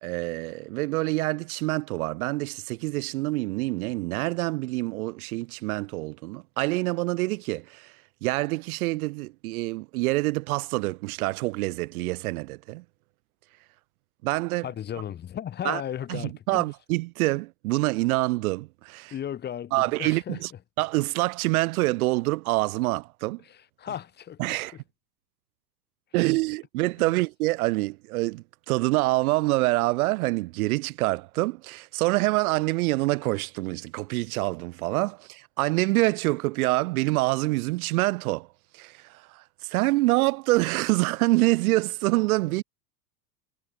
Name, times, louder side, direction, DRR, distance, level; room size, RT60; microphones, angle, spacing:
voice 1, 0.0-12.8 14.2-14.7 15.6-15.8 16.1-19.1 19.7-20.5 20.8-23.4 24.4-24.8 26.1-38.5 38.7-42.6, right 21 dB, 65° right, 0.6 m, -26 dB
voice 2, 14.6-16.6 19.1-20.4 23.4-24.8 27.0-27.1 42.4-42.6, left 10 dB, 20° left, 1.0 m, -36 dB
hypercardioid pair, 120°, 48 cm